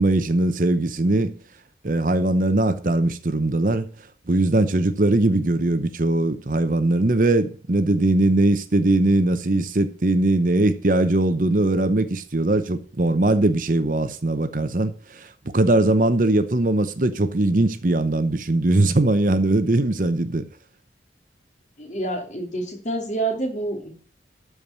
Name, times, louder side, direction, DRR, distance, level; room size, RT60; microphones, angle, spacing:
voice 1, 0.0-1.3 1.8-3.9 4.3-15.3 15.5-20.5, right 2 dB, 45° right, 0.8 m, -20 dB
voice 2, 21.8-23.9, right 2 dB, 40° left, 2.9 m, -28 dB
12.5 x 4.8 x 6.7 m
head